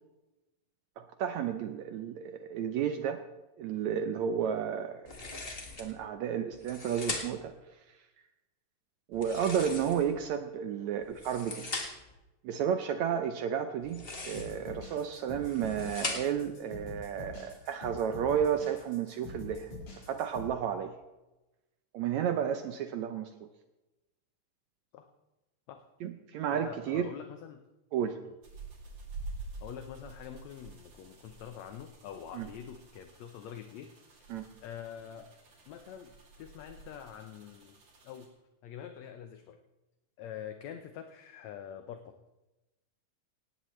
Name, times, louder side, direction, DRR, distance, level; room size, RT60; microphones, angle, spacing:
voice 1, 1.0-3.2 3.6-5.2 5.8-7.5 9.1-11.6 12.4-19.7 20.1-20.9 21.9-23.3 26.0-27.1 27.9-28.2 32.3-32.5 34.3-34.5, right 8 dB, 75° right, 8 dB, 1.8 m, -32 dB
sound 1, 5.0-5.9 6.5-7.5 9.1-10.2 11.0-12.1 13.8-14.7 15.3-16.5, left 3 dB, 40° left, 0.8 m, -40 dB
sound 2, 14.3-20.5, left 3 dB, 55° left, 6.0 m, -45 dB
voice 2, 26.5-27.6 28.2-28.3 29.6-33.9 34.6-35.3 35.7-37.8 38.0-38.3 38.6-39.6 40.2-42.1, left 9 dB, 70° left, 7 dB, 1.8 m, -45 dB
sound 3, 28.4-38.3, right 3 dB, 50° right, 3.7 m, -48 dB
17.5 x 17.5 x 3.2 m, 1.0 s
omnidirectional pair, 3.9 m